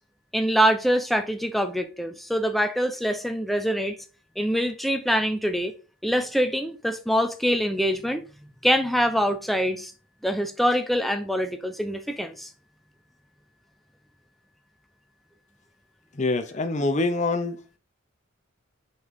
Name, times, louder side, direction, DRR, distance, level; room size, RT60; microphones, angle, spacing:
voice 1, 0.3-4.0 4.4-5.7 6.0-8.2 8.6-9.9 10.2-12.5, equal, ahead, 0.7 m, -24 dB
voice 2, 16.2-17.5, left 2 dB, 35° left, 0.7 m, -25 dB
6.2 x 5.4 x 3.7 m
head